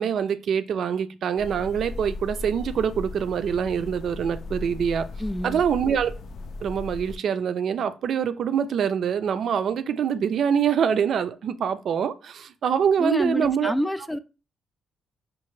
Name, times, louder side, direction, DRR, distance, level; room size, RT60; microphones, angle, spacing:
voice 1, 0.0-5.1 5.4-6.1 6.6-13.7, right 7 dB, 60° right, 0.5 m, -25 dB
sound 1, 1.4-7.2, left 3 dB, 60° left, 0.5 m, -37 dB
voice 2, 5.2-5.6 13.0-14.2, equal, 10° left, 0.3 m, -27 dB
5.7 x 2.5 x 3.1 m
cardioid pair, 90°, 0 cm